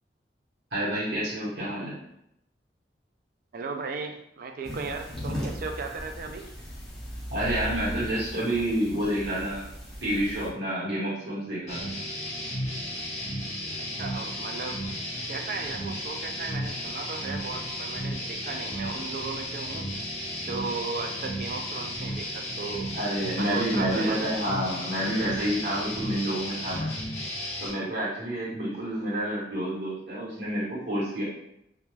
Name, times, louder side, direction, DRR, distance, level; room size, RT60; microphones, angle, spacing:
voice 1, 0.7-2.0 7.3-9.7 10.0-11.9 22.9-26.9 27.6-31.2, right 1 dB, 75° right, -8 dB, 1.1 m, -29 dB
voice 2, 3.5-6.5 13.8-14.8 15.3-19.9 20.4-22.9 23.4-24.2, right 4 dB, 50° right, 5 dB, 0.3 m, -36 dB
sound 1, 4.6-10.5, equal, 5° left, 0.6 m, -37 dB
sound 2, 11.7-27.7, equal, 40° left, 0.7 m, -34 dB
2.3 x 2.3 x 3.1 m, 0.79 s
head